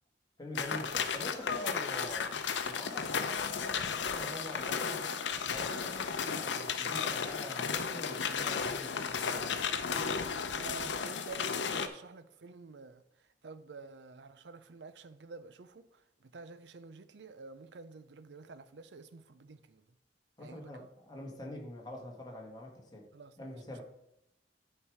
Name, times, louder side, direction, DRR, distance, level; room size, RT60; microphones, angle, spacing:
voice 1, 0.4-2.3 2.7-5.0 5.5-9.6 20.4-23.1 23.4-23.8, left 1 dB, 25° left, 1.7 m, -45 dB
sound 1, 0.5-11.9, left 6 dB, 85° left, 0.7 m, -34 dB
voice 2, 10.5-13.0 13.4-19.8 20.4-20.9 23.1-23.7, right 4 dB, 70° right, 0.6 m, -49 dB
10.0 x 4.7 x 4.9 m
head